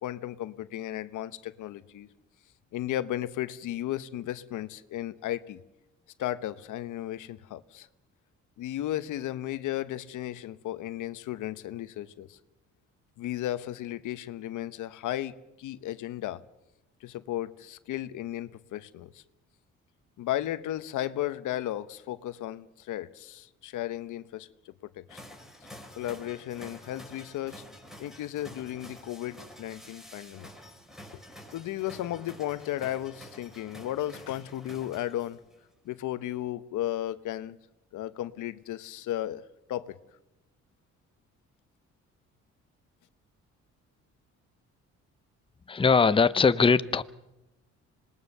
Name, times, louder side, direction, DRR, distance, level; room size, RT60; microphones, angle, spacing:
voice 1, 0.0-2.1 2.7-5.6 6.2-7.9 8.6-12.4 13.2-16.4 17.0-19.2 20.2-25.2 25.9-27.6 28.0-30.5 31.5-35.4 35.8-37.6 37.9-39.4 39.7-40.0, left 13 dB, 80° left, 1.0 m, -34 dB
sound 1, 25.1-35.5, left 1 dB, ahead, 5.3 m, -49 dB
voice 2, 45.7-47.0, left 5 dB, 15° left, 0.7 m, -21 dB
26.0 x 19.5 x 6.7 m
cardioid pair, 90°, 30 cm